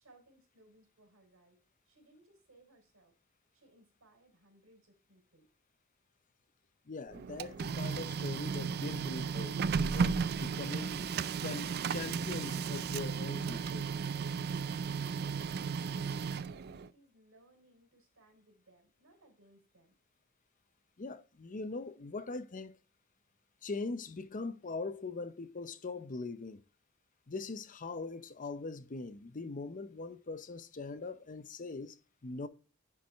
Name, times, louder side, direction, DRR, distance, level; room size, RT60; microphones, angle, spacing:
voice 1, 0.0-1.6 1.9-3.1 3.5-5.5 15.9-19.9, right 1 dB, 85° right, 4.0 m, -64 dB
voice 2, 6.9-11.0 11.4-13.9 21.0-22.7 23.6-26.6 27.3-32.0 32.2-32.5, left 3 dB, 40° left, 0.6 m, -41 dB
Printer, 7.1-16.9, right 5 dB, 50° right, 0.4 m, -35 dB
10.5 x 4.7 x 3.5 m
head